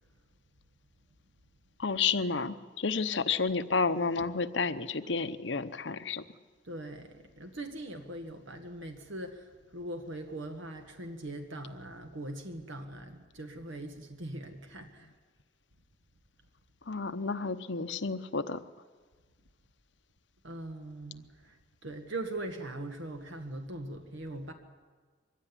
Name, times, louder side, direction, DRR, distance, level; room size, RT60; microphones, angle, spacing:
voice 1, 1.8-6.2 16.9-18.6, left 4 dB, 65° left, 12 dB, 0.9 m, -31 dB
voice 2, 6.6-15.1 20.4-24.5, right 1 dB, 75° right, 5 dB, 1.7 m, -41 dB
23.0 x 16.0 x 9.9 m, 1.5 s
head